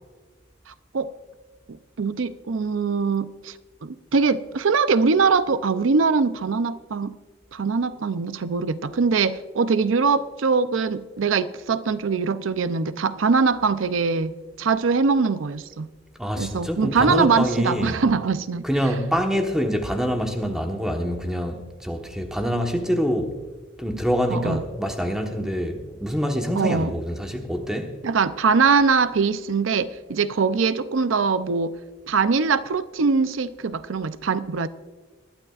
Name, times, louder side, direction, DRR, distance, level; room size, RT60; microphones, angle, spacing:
voice 1, 0.7-1.1 2.0-3.5 3.8-7.1 7.5-15.9 16.4-18.6 24.3-24.6 26.6-26.9 28.0-31.7 32.1-34.7, right 5 dB, 85° right, 0.5 m, -22 dB
voice 2, 16.2-18.0 18.6-23.3 23.8-27.9, equal, 5° right, 1.2 m, -25 dB
20.0 x 12.5 x 2.4 m
head